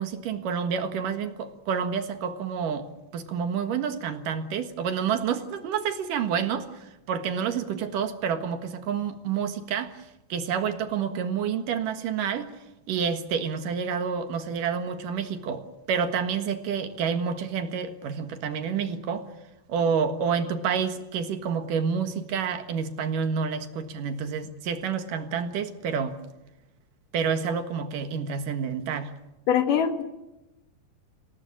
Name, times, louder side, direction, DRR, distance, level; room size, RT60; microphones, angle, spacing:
voice 1, 0.0-2.9 3.1-12.5 12.9-19.3 19.7-26.2 27.1-29.1, right 6 dB, 75° right, 8 dB, 3.2 m, -29 dB
voice 2, 29.5-30.0, left 8 dB, 75° left, 7 dB, 3.3 m, -22 dB
27.0 x 17.5 x 9.0 m, 0.98 s
omnidirectional pair, 3.8 m